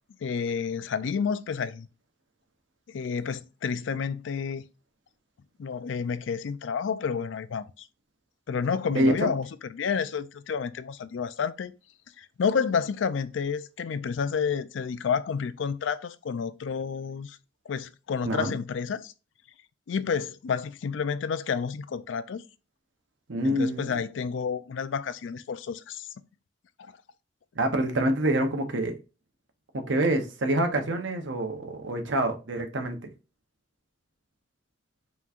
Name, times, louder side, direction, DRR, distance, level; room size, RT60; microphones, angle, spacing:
voice 1, 0.2-1.9 2.9-4.7 5.6-7.9 8.5-11.7 12.2-17.4 17.7-19.1 19.9-22.4 23.4-26.1 26.8-26.9, left 6 dB, 80° left, 0.4 m, -30 dB
voice 2, 8.9-9.3 18.3-18.5 23.3-23.9 27.5-29.0 29.7-33.0, right 1 dB, 80° right, 0.8 m, -26 dB
5.6 x 3.1 x 2.4 m
head